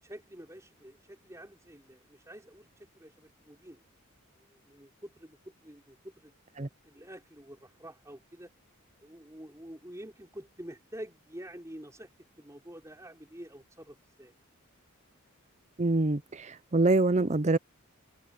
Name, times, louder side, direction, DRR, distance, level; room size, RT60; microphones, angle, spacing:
voice 1, 0.0-3.8 4.4-6.3 6.8-8.5 9.0-12.1 12.4-14.3, right 1 dB, 15° right, 5.0 m, -48 dB
voice 2, 15.8-17.6, right 2 dB, 30° right, 0.6 m, -25 dB
head